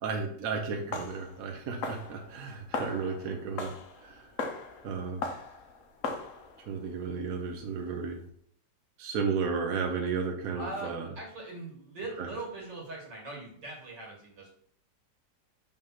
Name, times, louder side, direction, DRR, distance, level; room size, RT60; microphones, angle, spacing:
voice 1, 0.0-3.7 4.0-4.3 4.8-5.3 6.7-8.2 9.0-11.1 12.2-12.3, right 5 dB, 60° right, 2 dB, 1.2 m, -33 dB
sound 1, 0.5-8.2, left 3 dB, 55° left, 1.0 m, -40 dB
voice 2, 10.6-14.5, right 2 dB, 80° right, -1 dB, 2.6 m, -41 dB
5.4 x 3.5 x 5.7 m, 0.63 s
omnidirectional pair, 1.9 m